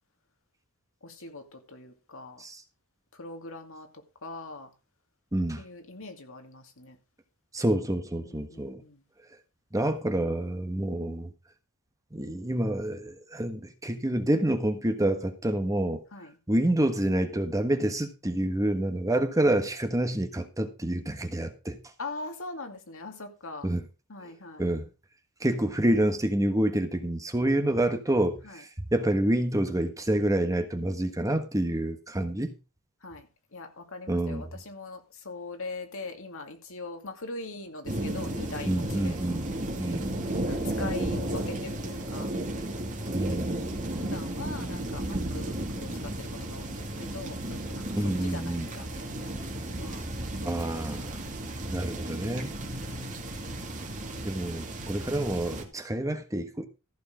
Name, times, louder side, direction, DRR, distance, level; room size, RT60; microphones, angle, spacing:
voice 1, 1.0-2.4 3.2-3.9 4.2-4.7 5.6-7.0 8.2-9.0 16.1-16.3 19.1-19.2 22.0-23.7 24.1-24.7 28.4-28.6 31.0-31.3 33.0-39.2 40.3-42.3 44.0-47.4 47.7-49.4 49.7-50.1 50.6-50.8 51.1-51.7 52.8-53.1, left 3 dB, 65° left, 2.4 m, -42 dB
voice 2, 5.3-5.6 7.5-8.8 9.7-11.3 12.1-16.0 16.5-21.8 23.6-23.8 24.6-24.9 25.4-32.5 34.1-34.5 38.7-39.5 39.8-40.1 43.1-43.5 47.9-48.7 50.4-51.2 51.7-52.6 54.2-56.7, right 1 dB, 15° right, 1.4 m, -28 dB
sound 1, 37.9-55.6, right 1 dB, 35° right, 2.6 m, -34 dB
14.5 x 6.7 x 5.0 m
head